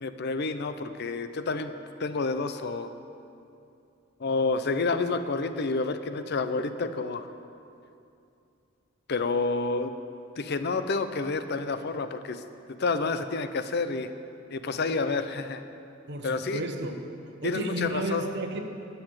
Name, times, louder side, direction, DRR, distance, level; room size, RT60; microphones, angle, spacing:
voice 1, 0.0-1.7 2.0-2.9 4.2-7.3 9.1-9.9 10.4-12.4 12.7-14.1 14.5-15.6 16.2-16.6 17.4-18.3, left 3 dB, 55° left, 10 dB, 0.6 m, -29 dB
voice 2, 16.1-17.1 17.4-18.6, right 1 dB, 60° right, 5 dB, 1.1 m, -33 dB
11.0 x 7.0 x 8.9 m, 2.6 s
head